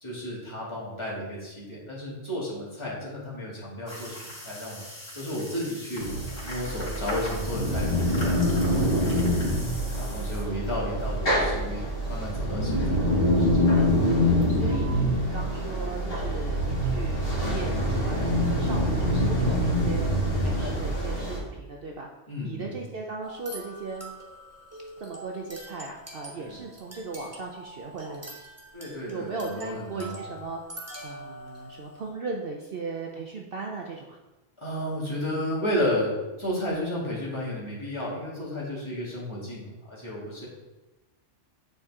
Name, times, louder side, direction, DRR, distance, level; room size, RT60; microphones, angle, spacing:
voice 1, 0.0-4.8 5.2-6.1 6.4-9.3 9.9-13.0 13.3-13.7 20.6-20.7 22.3-22.7 26.3-26.6 28.7-30.1 34.6-40.5, left 1 dB, 25° left, -7 dB, 2.3 m, -33 dB
sound 1, 3.9-10.4, equal, 70° left, 3.1 m, -41 dB
sound 2, 6.0-21.4, equal, 50° left, 2.4 m, -25 dB
voice 2, 10.0-10.4 13.8-13.9 14.5-20.1 20.4-22.1 22.4-24.1 25.0-28.3 29.1-34.2, right 3 dB, 55° right, 0 dB, 0.8 m, -38 dB
sound 3, 23.2-32.1, right 1 dB, 15° right, 1.0 m, -44 dB
9.1 x 4.6 x 3.6 m, 1.1 s
omnidirectional pair, 1.3 m